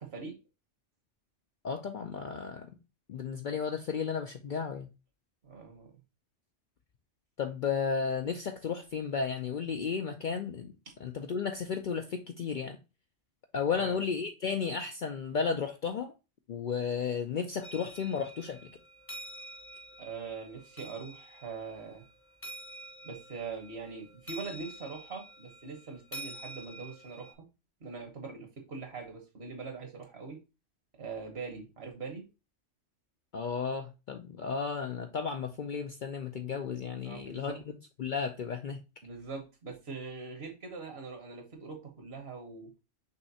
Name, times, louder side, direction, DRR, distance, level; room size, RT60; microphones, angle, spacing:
voice 1, 1.6-2.7 3.1-4.9 7.4-10.7 11.0-12.8 13.5-16.1 16.5-18.7 33.3-38.8, left 6 dB, 60° left, 0.5 m, -33 dB
voice 2, 5.4-5.9 10.9-11.0 13.7-14.0 20.0-22.0 23.0-27.3 27.8-30.4 31.0-32.2 37.0-37.5 39.0-42.7, right 4 dB, 60° right, 1.5 m, -42 dB
sound 1, 17.6-27.3, right 1 dB, 15° left, 0.7 m, -48 dB
5.7 x 3.2 x 2.7 m
omnidirectional pair, 1.2 m